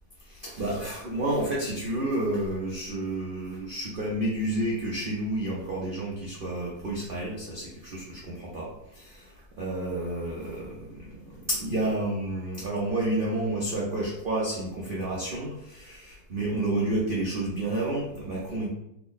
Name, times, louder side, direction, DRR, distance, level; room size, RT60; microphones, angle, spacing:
voice 1, 0.3-18.7, right 1 dB, 85° right, -5 dB, 0.4 m, -30 dB
3.4 x 2.0 x 3.8 m, 0.82 s
omnidirectional pair, 1.9 m